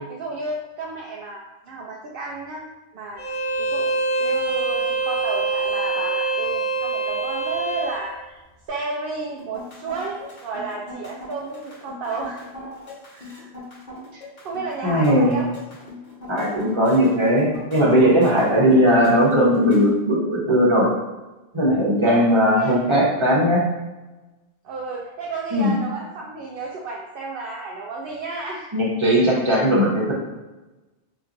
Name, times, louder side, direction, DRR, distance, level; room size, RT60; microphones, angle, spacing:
voice 1, 0.0-2.6 2.9-3.2 3.6-8.4 8.7-12.4 13.1-13.5 14.4-15.5 22.0-22.8 24.6-28.7, right 3 dB, 65° right, -2 dB, 0.7 m, -32 dB
Bowed string instrument, 3.2-8.0, right 3 dB, 80° left, 1.2 m, -24 dB
sound 1, 9.4-20.0, left 2 dB, 45° left, 1.1 m, -40 dB
voice 2, 14.8-15.4 16.3-20.9 21.5-23.6 25.5-25.8 28.7-30.1, equal, 30° right, -5 dB, 1.0 m, -18 dB
4.3 x 2.9 x 2.5 m, 1.1 s
omnidirectional pair, 1.1 m